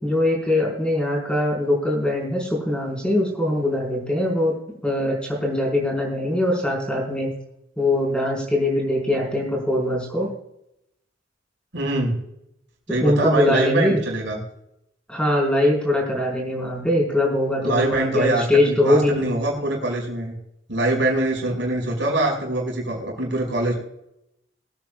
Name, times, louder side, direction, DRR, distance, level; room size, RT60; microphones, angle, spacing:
voice 1, 0.0-4.5 4.8-7.3 7.8-10.3 13.0-14.0 15.1-19.2, left 1 dB, 5° left, -2 dB, 5.0 m, -22 dB
voice 2, 11.7-12.2 12.9-14.4 17.6-20.4 20.7-23.7, right 2 dB, 80° right, -1 dB, 5.6 m, -23 dB
24.5 x 9.0 x 2.4 m, 0.81 s
head